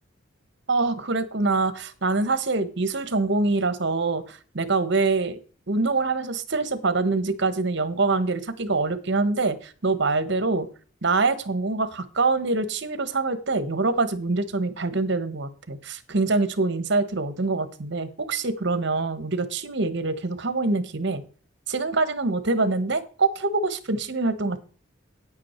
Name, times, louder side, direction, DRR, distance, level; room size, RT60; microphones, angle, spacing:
voice 1, 0.7-5.4 5.7-10.7 11.0-21.2 21.7-24.6, right 3 dB, 60° right, 13 dB, 1.2 m, -25 dB
9.4 x 8.5 x 4.4 m, 0.39 s
head